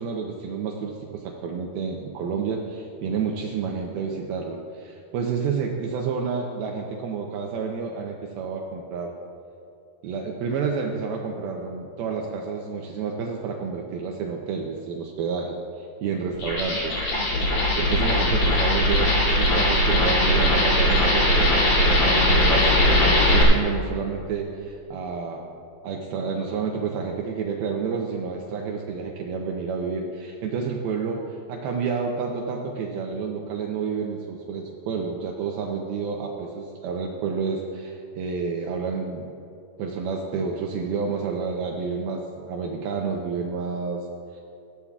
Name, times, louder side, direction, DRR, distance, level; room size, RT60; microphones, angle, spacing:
voice 1, 0.0-9.1 10.0-17.0 17.8-21.5 22.0-25.5 25.8-39.3 39.8-44.1 44.3-44.4, right 5 dB, 90° right, 1 dB, 2.1 m, -29 dB
sound 1, 16.3-23.4, left 1 dB, 50° left, 3.9 m, -20 dB
17.0 x 14.0 x 2.4 m, 2.7 s
omnidirectional pair, 5.3 m